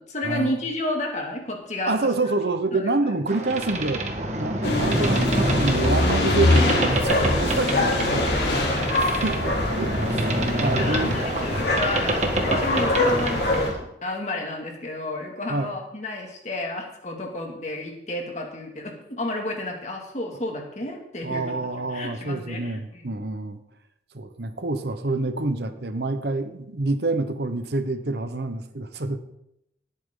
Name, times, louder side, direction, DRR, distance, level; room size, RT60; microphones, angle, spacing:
voice 1, 0.0-2.0 2.7-3.0 8.6-9.0 10.5-21.6 21.9-23.1, left 1 dB, 40° left, 1 dB, 2.4 m, -31 dB
voice 2, 1.9-4.0 4.3-8.8 9.1-9.4 9.7-11.1 15.5-15.7 21.2-23.6 24.1-29.2, right 2 dB, 65° right, 9 dB, 1.1 m, -27 dB
Boat Water vehicle, 3.3-13.8, right 1 dB, 40° right, 1.6 m, -27 dB
sound 1, 4.6-13.7, left 1 dB, 65° left, 3.3 m, -23 dB
19.0 x 8.8 x 3.9 m, 0.81 s
head